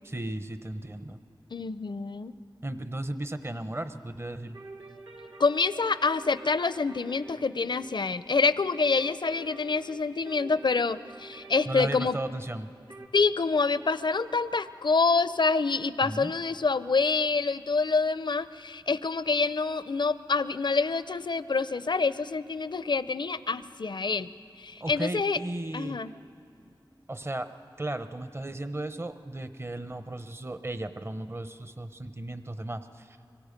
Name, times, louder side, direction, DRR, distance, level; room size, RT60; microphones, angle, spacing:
voice 1, 0.0-1.2 2.6-4.6 11.7-12.7 16.0-16.3 24.8-26.0 27.1-27.5 27.8-33.2, right 1 dB, 30° right, 10 dB, 0.8 m, -35 dB
voice 2, 1.5-2.3 5.4-12.2 13.1-24.3 24.6-25.4 25.7-26.1, left 4 dB, 65° left, 14 dB, 0.5 m, -27 dB
sound 1, 4.5-13.1, right 3 dB, 80° right, 2.3 m, -49 dB
24.5 x 24.0 x 5.2 m, 2.5 s
wide cardioid pair, 45°, 8 cm